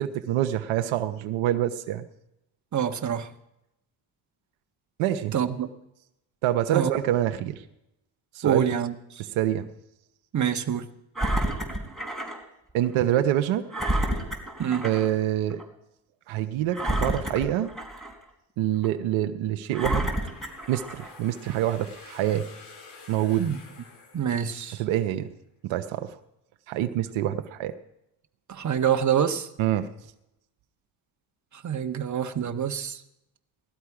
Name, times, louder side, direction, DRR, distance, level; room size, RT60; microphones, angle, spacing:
voice 1, 0.0-2.1 5.0-5.3 6.4-7.6 8.3-8.7 9.3-9.7 12.7-13.6 14.8-15.6 16.3-17.7 18.6-20.1 20.7-22.4 23.1-23.5 24.8-25.3 25.6-26.1 26.7-27.7 29.6-29.9, right 12 dB, 75° right, 8 dB, 1.0 m, -26 dB
voice 2, 2.7-3.3 5.3-5.7 6.7-6.9 8.4-8.9 10.3-10.9 14.6-14.9 23.4-23.6 24.1-24.8 28.5-29.5 31.5-33.0, right 8 dB, 35° right, 6 dB, 1.4 m, -26 dB
Engine, 11.1-12.4 12.8-12.9 13.7-15.1 15.5-15.6 16.7-18.2 18.8-18.9 19.7-21.2 21.9-22.0, right 1 dB, ahead, 4.0 m, -29 dB
sound 1, 20.0-24.9, left 4 dB, 90° left, 3.6 m, -49 dB
18.5 x 12.5 x 4.9 m, 0.85 s
supercardioid pair, 70°, 48 cm